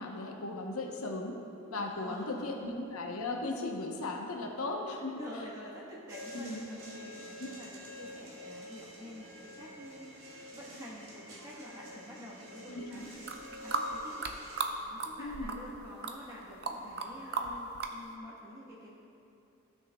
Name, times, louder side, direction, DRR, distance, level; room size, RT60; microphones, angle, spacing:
voice 1, 0.0-1.4 1.7-5.5 6.3-6.6 7.4-7.5 12.7-13.0 15.2-15.5, left 2 dB, 85° left, 1 dB, 0.8 m, -37 dB
voice 2, 1.8-2.4 5.2-19.0, equal, 15° right, -5 dB, 1.1 m, -48 dB
sound 1, 6.1-14.6, equal, 70° right, 1.6 m, -48 dB
sound 2, 13.1-14.7 15.0-17.1 17.3-17.9, right 4 dB, 50° right, 0.5 m, -35 dB
15.5 x 6.3 x 2.2 m, 2.8 s
head